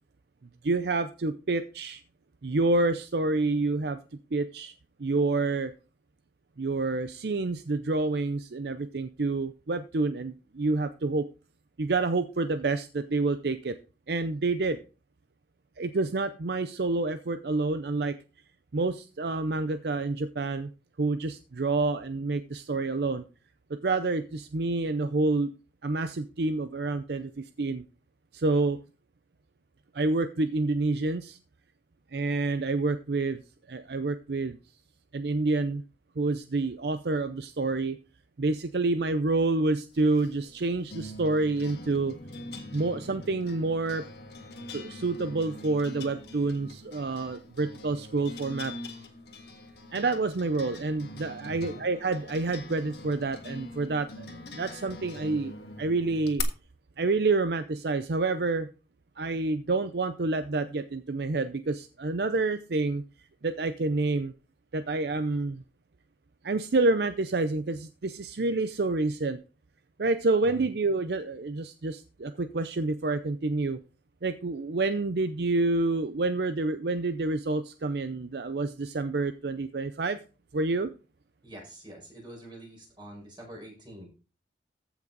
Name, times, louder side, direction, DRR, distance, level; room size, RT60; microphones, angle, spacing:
voice 1, 0.6-2.0 2.4-4.0 4.3-4.7 5.0-5.7 6.6-11.3 11.8-13.8 14.1-14.8 15.8-18.2 18.7-20.7 21.0-23.2 23.7-25.5 25.8-27.8 28.3-28.8 29.9-31.4 32.1-33.4 33.7-34.6 35.1-35.8 36.2-38.0 38.4-42.1 42.7-44.1 44.7-48.7 49.9-54.3 54.5-55.5 55.8-56.4 57.0-58.7 59.2-63.0 63.4-64.3 64.7-65.6 66.4-69.4 70.0-73.8 74.2-80.2 80.5-80.9, right 3 dB, 65° right, 11 dB, 0.6 m, -28 dB
sound 1, 39.9-56.4, left 2 dB, 65° left, 1.6 m, -43 dB
voice 2, 51.4-51.9 70.4-70.7 81.4-84.1, equal, 25° right, -1 dB, 5.4 m, -45 dB
14.5 x 6.0 x 4.0 m, 0.34 s
head